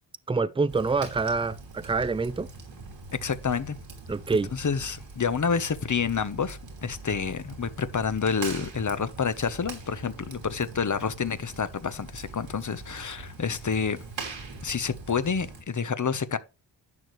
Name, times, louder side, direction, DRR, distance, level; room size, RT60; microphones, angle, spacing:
voice 1, 0.3-2.5 4.1-4.5, right 4 dB, 10° right, 0.6 m, -26 dB
Fire, 0.7-15.6, right 3 dB, 85° right, 2.9 m, -42 dB
voice 2, 3.2-3.8 4.5-14.3 14.6-16.4, left 6 dB, 40° left, 1.0 m, -29 dB
11.0 x 6.4 x 3.2 m
cardioid pair, 50°, 44 cm